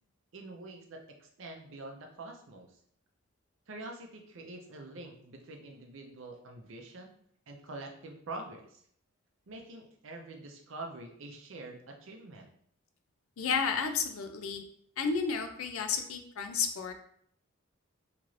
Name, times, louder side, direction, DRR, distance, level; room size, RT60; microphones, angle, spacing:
voice 1, 0.3-2.8 3.7-7.1 7.5-8.8 9.5-12.5, right 2 dB, 65° right, 2 dB, 0.6 m, -45 dB
voice 2, 13.4-14.6 15.0-16.9, left 5 dB, 80° left, 6 dB, 0.4 m, -32 dB
2.9 x 2.5 x 3.1 m, 0.64 s
head